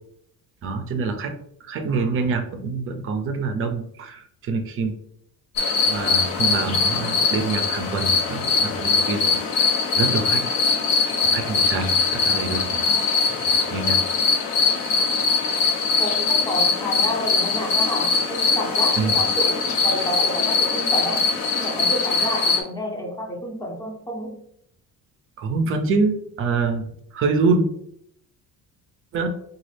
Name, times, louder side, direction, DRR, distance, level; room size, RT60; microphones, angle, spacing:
voice 1, 0.6-1.3 1.6-4.9 5.9-10.4 11.2-14.0 19.0-19.2 25.4-26.9 27.1-27.7 29.1-29.3, right 4 dB, 40° right, 6 dB, 0.4 m, -26 dB
sound 1, 5.6-22.6, left 4 dB, 90° left, 0.9 m, -22 dB
voice 2, 16.0-21.3 21.5-24.3, equal, 10° left, -1 dB, 0.6 m, -29 dB
4.0 x 2.3 x 3.2 m, 0.71 s
cardioid pair, 175°, 34 cm